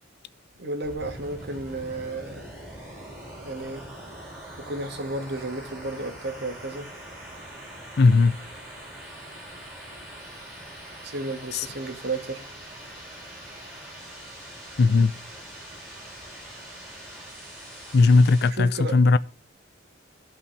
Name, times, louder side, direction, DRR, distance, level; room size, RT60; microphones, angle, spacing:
voice 1, 0.6-2.5 3.4-3.9 4.6-6.9 11.0-12.4 18.6-19.0, right 2 dB, 55° right, 2.0 m, -33 dB
sound 1, 0.8-18.5, right 1 dB, ahead, 4.1 m, -43 dB
voice 2, 8.0-8.4 11.5-11.7 14.8-15.1 17.9-19.2, left 3 dB, 55° left, 0.5 m, -18 dB
15.5 x 5.5 x 3.3 m
head